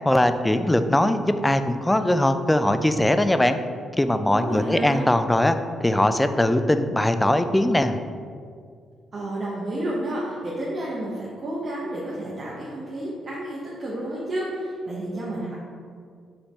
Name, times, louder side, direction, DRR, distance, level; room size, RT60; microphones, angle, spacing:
voice 1, 0.1-3.6 4.0-5.6 5.8-8.0, left 1 dB, 10° left, 9 dB, 0.4 m, -21 dB
voice 2, 4.3-5.0 9.1-15.6, right 1 dB, 45° right, -6 dB, 1.2 m, -30 dB
5.7 x 3.3 x 5.6 m, 2.1 s
cardioid pair, 90°, 0 cm